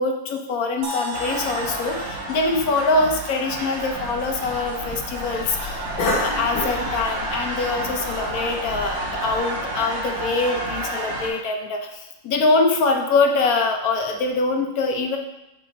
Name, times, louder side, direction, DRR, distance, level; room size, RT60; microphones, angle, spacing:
voice 1, 0.0-15.2, left 3 dB, 65° left, 3 dB, 1.0 m, -24 dB
sound 1, 0.8-4.7, left 1 dB, 35° right, 0.9 m, -36 dB
sound 2, 1.1-11.3, right 1 dB, 55° right, 1.8 m, -30 dB
Cough, 3.9-9.4, left 2 dB, 85° left, 1.8 m, -32 dB
7.9 x 3.5 x 4.0 m, 0.92 s
omnidirectional pair, 2.0 m